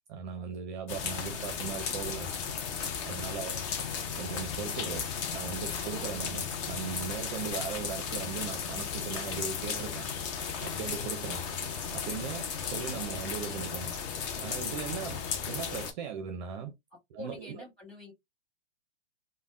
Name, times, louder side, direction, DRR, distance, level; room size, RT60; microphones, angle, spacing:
voice 1, 0.1-2.3 3.1-3.6 4.2-10.1 10.6-11.5 11.9-14.0 14.4-16.7 17.1-17.6, right 7 dB, 40° right, 0.5 m, -38 dB
sound 1, 0.9-15.9, left 6 dB, 30° left, 0.4 m, -35 dB
voice 2, 17.2-18.1, left 3 dB, ahead, 1.8 m, -45 dB
3.4 x 2.1 x 2.3 m
hypercardioid pair, 135°, 35 cm